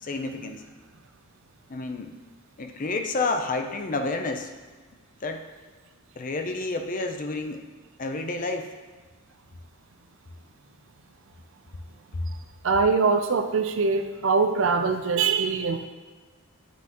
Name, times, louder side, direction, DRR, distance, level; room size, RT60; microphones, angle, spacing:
voice 1, 0.0-0.6 1.7-2.2 2.6-4.5 5.2-5.4 6.2-7.7 8.0-8.7 12.1-12.2, left 3 dB, 35° left, 6 dB, 0.5 m, -30 dB
voice 2, 12.6-15.9, right 4 dB, 60° right, 8 dB, 0.5 m, -23 dB
10.0 x 5.9 x 3.0 m, 1.4 s
head